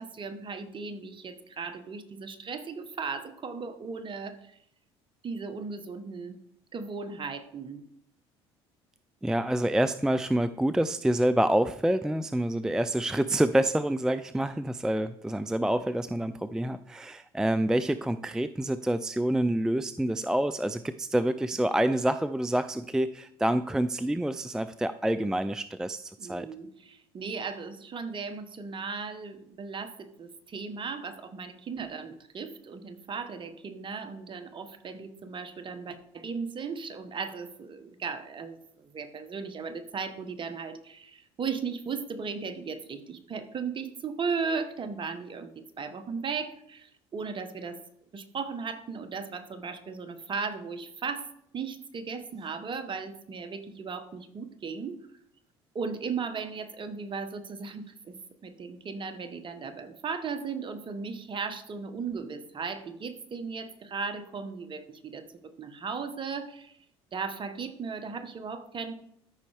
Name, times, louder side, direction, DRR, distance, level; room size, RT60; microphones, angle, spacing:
voice 1, 0.0-4.6 5.2-6.4 6.7-7.8 26.2-47.8 48.1-51.3 51.5-55.0 55.7-66.8 67.1-68.9, right 5 dB, 40° right, 10 dB, 1.2 m, -36 dB
voice 2, 9.2-26.5, right 1 dB, 5° right, 13 dB, 0.3 m, -27 dB
13.5 x 5.3 x 3.4 m, 0.72 s
hypercardioid pair, 70°, 13 cm